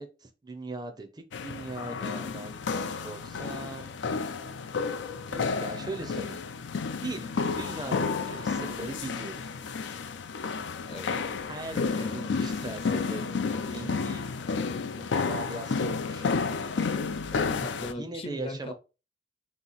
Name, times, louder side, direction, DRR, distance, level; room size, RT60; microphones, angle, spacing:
voice 1, 0.0-4.0 5.3-6.4 7.0-9.5 11.5-14.2 15.0-16.4 17.9-18.7, right 2 dB, 25° right, 0.5 m, -40 dB
sound 1, 1.3-17.9, left 4 dB, 85° left, 0.4 m, -31 dB
voice 2, 2.2-2.7 7.4-7.5 10.8-11.3 11.7-12.3 13.8-14.0 17.3-18.7, left 1 dB, 30° left, 0.6 m, -41 dB
3.3 x 2.9 x 4.0 m
head